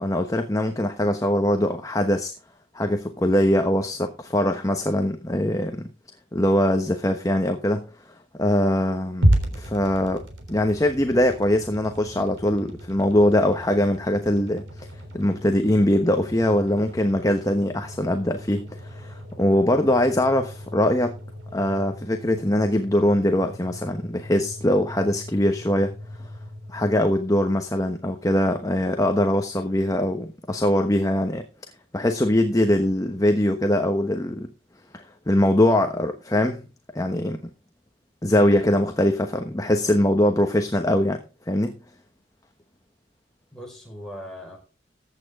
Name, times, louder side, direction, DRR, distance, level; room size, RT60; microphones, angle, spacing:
voice 1, 0.0-2.3 2.7-5.9 6.3-14.9 15.1-21.1 21.5-25.9 26.7-31.4 31.9-34.5 34.9-36.7 36.9-37.4 38.2-41.2 41.5-41.7, left 1 dB, 20° left, 1.1 m, -22 dB
sound 1, 9.2-27.4, equal, 90° right, 3.6 m, -33 dB
voice 2, 38.3-38.7 43.5-44.6, equal, 5° left, 5.4 m, -39 dB
15.0 x 8.8 x 3.7 m
head